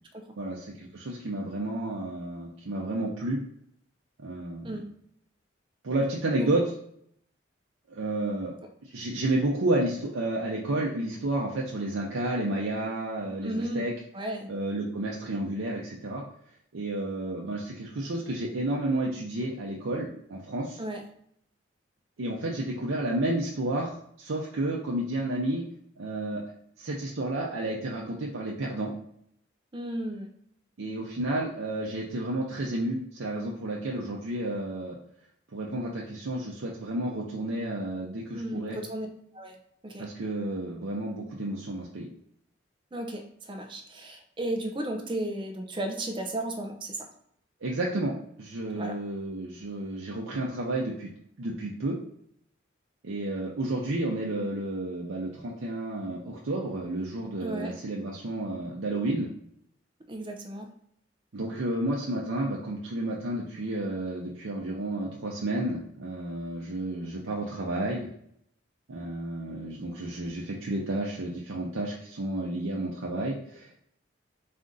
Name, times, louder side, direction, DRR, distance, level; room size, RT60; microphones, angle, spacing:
voice 1, 0.4-3.4 4.2-4.8 5.8-6.6 7.9-8.5 8.9-13.9 14.5-16.2 16.7-20.8 22.2-25.6 26.0-26.4 26.8-28.9 30.8-35.0 35.5-38.8 40.0-42.1 47.6-48.1 48.4-51.1 51.4-52.0 53.0-59.3 61.3-68.1 68.9-73.8, right 1 dB, 90° right, -3 dB, 0.6 m, -31 dB
voice 2, 13.4-13.9 14.1-14.5 20.8-21.0 29.7-30.3 38.3-39.1 39.3-39.6 39.8-40.1 42.9-47.0 48.7-49.0 57.4-57.7 60.1-60.7, right 1 dB, 25° right, 4 dB, 0.5 m, -34 dB
4.2 x 2.6 x 3.7 m, 0.69 s
head